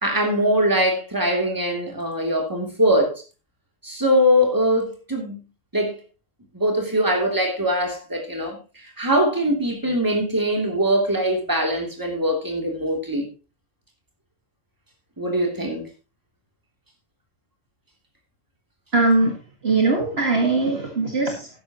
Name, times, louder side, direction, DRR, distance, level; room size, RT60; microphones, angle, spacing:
voice 1, 0.0-3.1 3.8-5.4 5.7-6.0 6.5-8.6 9.0-13.3 15.2-15.9, equal, 15° right, 3.0 m, -22 dB
voice 2, 18.9-19.3 19.6-21.5, right 3 dB, 50° right, 2.2 m, -20 dB
12.5 x 10.5 x 3.0 m
omnidirectional pair, 1.4 m